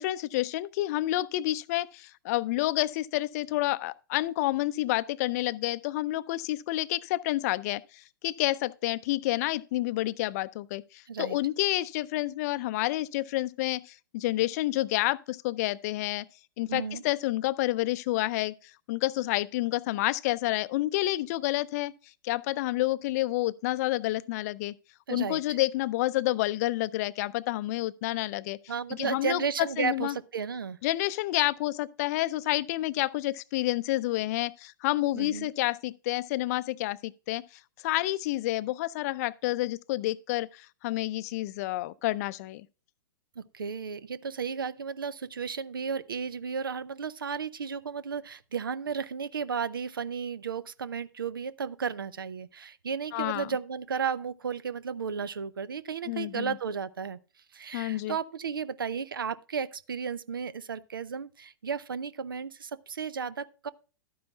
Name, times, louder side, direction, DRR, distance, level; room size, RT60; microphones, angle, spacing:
voice 1, 0.0-16.3 16.6-21.9 22.2-24.7 25.1-28.6 28.9-29.4 29.8-30.2 30.8-37.4 37.8-42.7 53.1-53.5 56.1-56.6 57.7-58.2, left 17 dB, 45° left, 0.5 m, -29 dB
voice 2, 16.7-17.0 25.1-25.6 28.7-30.8 35.1-35.5 43.4-57.2 57.5-63.7, right 6 dB, 80° right, 0.6 m, -34 dB
12.0 x 9.5 x 2.3 m
figure-of-eight pair, 110°, 11 cm